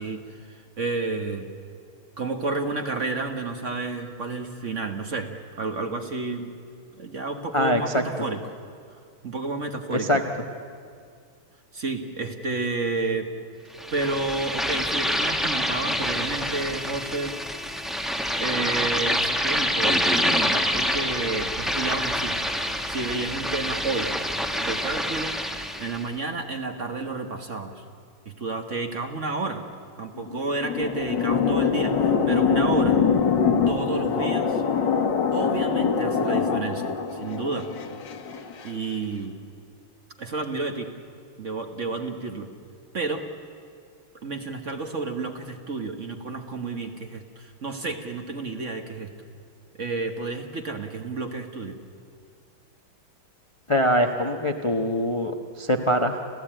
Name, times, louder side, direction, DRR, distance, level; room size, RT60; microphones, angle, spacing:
voice 1, 0.0-1.5 2.2-5.3 5.6-6.5 7.0-8.4 9.2-10.2 11.7-13.3 13.9-17.4 18.4-22.4 22.9-24.1 24.6-25.4 25.8-27.8 28.2-29.6 30.0-33.0 33.7-34.6 35.3-37.7 38.6-39.4 40.2-40.9 41.4-42.5 42.9-43.3 44.2-49.1 49.7-51.8, right 3 dB, 40° right, 6 dB, 1.3 m, -30 dB
voice 2, 7.5-8.0 9.9-10.2 53.7-56.2, equal, 25° left, 4 dB, 0.6 m, -23 dB
Radio Noisy Bubbles, 13.8-26.0, equal, ahead, 1.0 m, -26 dB
sound 1, 30.2-38.7, left 6 dB, 60° left, 1.8 m, -24 dB
29.0 x 15.0 x 8.9 m, 2.3 s
omnidirectional pair, 2.4 m